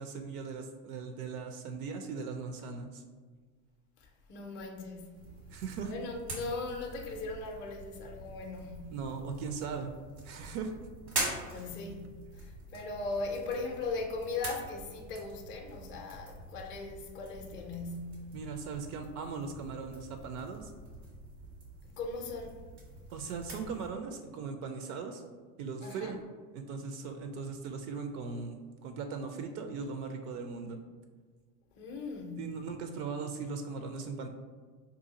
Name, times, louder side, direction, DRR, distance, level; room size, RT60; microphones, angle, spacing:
voice 1, 0.0-3.0 5.5-5.9 8.9-9.9 10.2-10.7 11.5-11.6 18.3-20.7 23.1-25.2 25.6-26.2 26.5-30.8 32.4-34.3, right 5 dB, 65° right, 0.5 m, -39 dB
voice 2, 4.0-5.3 5.8-9.0 11.4-12.1 12.3-18.3 21.9-22.6 25.8-26.2 31.7-32.7, left 3 dB, 25° left, 0.4 m, -39 dB
sound 1, 5.1-23.9, right 2 dB, 90° right, 1.4 m, -44 dB
2.7 x 2.4 x 3.8 m
hypercardioid pair, 85°, 49 cm